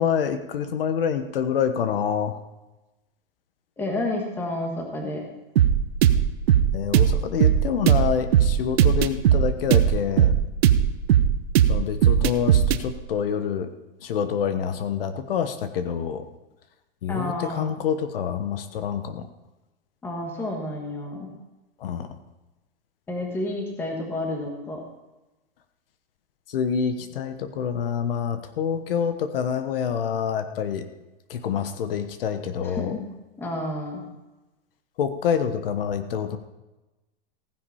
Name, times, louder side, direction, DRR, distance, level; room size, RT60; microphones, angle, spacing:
voice 1, 0.0-2.4 6.7-10.4 11.7-13.7 14.0-16.3 17.0-19.3 21.8-22.1 26.5-30.9 31.3-33.0 35.0-36.4, left 7 dB, 65° left, 9 dB, 1.1 m, -27 dB
voice 2, 3.8-5.2 17.1-17.7 20.0-21.3 23.1-24.8 32.6-33.1 33.4-34.0, left 1 dB, 5° left, 1 dB, 1.5 m, -30 dB
sound 1, 5.6-12.8, right 10 dB, 80° right, 1.0 m, -19 dB
15.5 x 10.5 x 4.2 m, 1.1 s
supercardioid pair, 180°, 30 cm